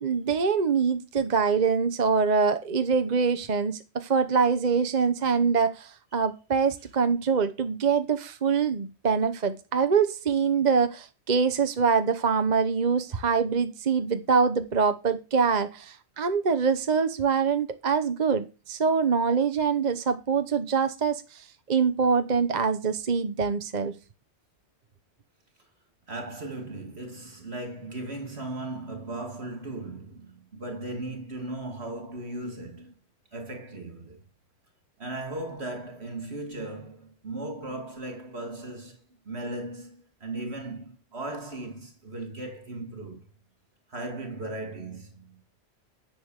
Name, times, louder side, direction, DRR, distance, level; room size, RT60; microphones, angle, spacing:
voice 1, 0.0-23.9, right 5 dB, 45° right, 1.0 m, -24 dB
voice 2, 26.1-33.0 33.3-34.2 35.0-43.3 43.9-45.4, right 2 dB, 70° right, 2.8 m, -37 dB
10.5 x 6.8 x 6.5 m
omnidirectional pair, 1.1 m